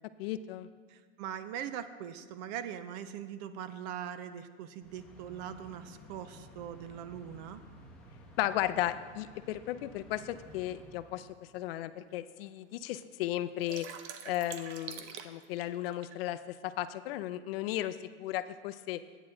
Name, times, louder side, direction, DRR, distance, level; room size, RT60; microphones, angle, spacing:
voice 1, 0.2-0.7 8.4-13.9 14.2-19.0, left 13 dB, 60° left, 13 dB, 0.5 m, -35 dB
voice 2, 0.9-7.6, right 9 dB, 40° right, 12 dB, 0.5 m, -41 dB
sound 1, 4.8-11.6, left 1 dB, ahead, 1.4 m, -54 dB
sound 2, 10.4-10.5 11.2-11.3 11.7-11.8 12.0-12.6 13.0-16.2, right 8 dB, 75° right, 0.9 m, -45 dB
11.0 x 9.1 x 3.7 m, 1.6 s
supercardioid pair, 160°, 34 cm